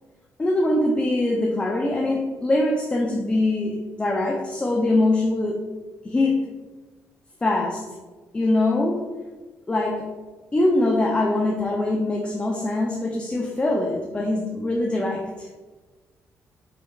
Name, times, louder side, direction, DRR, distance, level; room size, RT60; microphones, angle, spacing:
voice 1, 0.4-5.6 6.0-6.5 7.4-7.8 8.3-9.1 9.7-10.1 10.5-15.5, left 2 dB, 20° left, -1 dB, 0.5 m, -23 dB
4.3 x 3.2 x 2.3 m, 1.3 s
cardioid pair, 85°, 6 cm